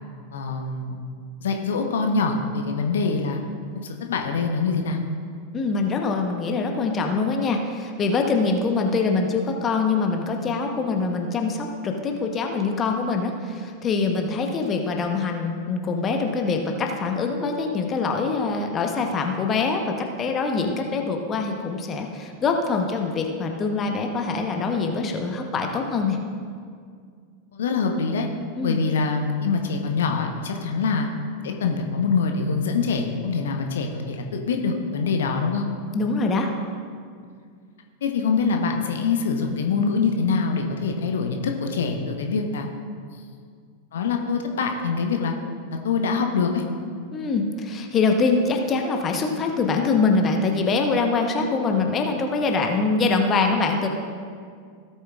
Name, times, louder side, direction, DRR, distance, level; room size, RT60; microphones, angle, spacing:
voice 1, 0.3-1.0 1.4-3.4 3.8-5.0 27.5-28.3 28.6-31.1 31.4-35.6 38.0-42.7 43.9-45.3 45.8-46.6, left 4 dB, 60° left, 3 dB, 1.0 m, -24 dB
voice 2, 5.5-26.2 28.6-28.8 35.9-36.5 47.1-53.9, left 4 dB, 25° left, 3 dB, 1.0 m, -24 dB
17.0 x 8.4 x 2.5 m, 2.1 s
figure-of-eight pair, 90°, 0 cm